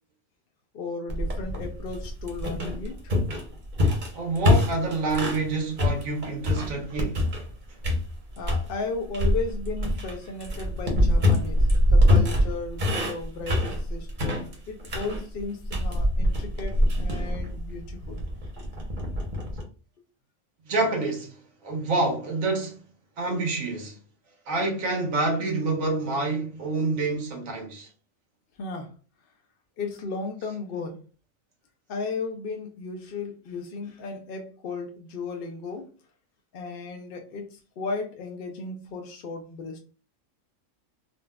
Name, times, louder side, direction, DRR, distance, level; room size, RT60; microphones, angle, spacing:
voice 1, 0.7-3.1 8.4-18.2 28.6-28.9 29.8-31.0 31.9-35.9 36.5-39.8, left 4 dB, 60° left, 0.6 m, -35 dB
sound 1, 1.1-5.5 5.8-7.5 7.8-8.7 9.1-19.6, left 1 dB, 40° right, 0.9 m, -24 dB
voice 2, 4.1-7.2 7.7-7.8 20.6-22.8 23.2-24.0 24.5-27.9, right 3 dB, 80° right, 1.4 m, -27 dB
4.0 x 2.3 x 2.2 m
omnidirectional pair, 1.4 m